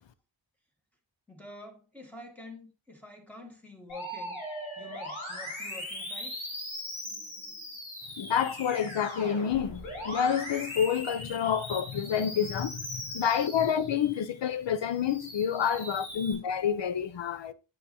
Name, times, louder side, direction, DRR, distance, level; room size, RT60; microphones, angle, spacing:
voice 1, 1.3-4.4 4.8-6.5 7.0-7.8 15.8-15.9 16.1-16.3, left 2 dB, 5° left, 1.9 m, -48 dB
Musical instrument, 3.9-14.3 14.8-16.3, left 1 dB, 85° left, 3.6 m, -40 dB
voice 2, 8.2-17.5, left 8 dB, 65° left, 0.7 m, -28 dB
8.5 x 6.7 x 2.7 m
wide cardioid pair, 90°, 47 cm